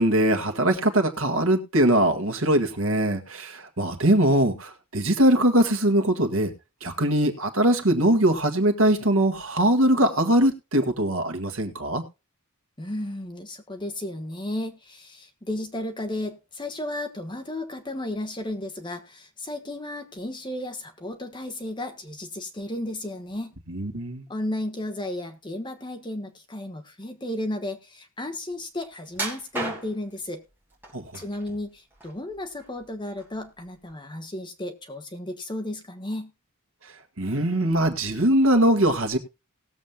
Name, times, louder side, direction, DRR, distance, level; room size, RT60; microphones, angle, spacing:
voice 1, 0.0-6.5 6.8-12.0 23.7-24.2 30.9-31.0 37.2-39.2, right 1 dB, 65° right, 4 dB, 1.7 m, -21 dB
voice 2, 12.8-23.5 24.3-30.4 31.1-36.3, left 1 dB, 20° left, 5 dB, 1.3 m, -34 dB
sound 1, 29.1-30.2 30.8-31.5 31.9-32.8 33.2-33.4 33.9-34.0, right 1 dB, 10° right, 2.7 m, -33 dB
19.0 x 7.4 x 2.2 m, 0.28 s
head